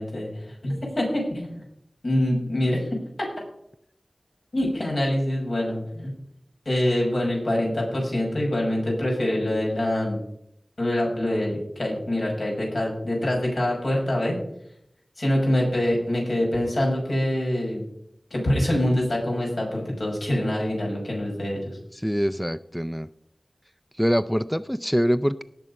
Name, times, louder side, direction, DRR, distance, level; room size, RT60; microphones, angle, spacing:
voice 1, 0.0-1.6 2.0-3.0 4.5-6.1 6.7-10.2 10.8-14.4 15.2-17.8 18.3-21.8, left 1 dB, 70° left, -2 dB, 5.7 m, -25 dB
voice 2, 21.9-23.1 24.0-25.4, equal, ahead, 12 dB, 0.4 m, -24 dB
18.5 x 6.9 x 5.4 m, 0.74 s
wide cardioid pair, 65°, 0 cm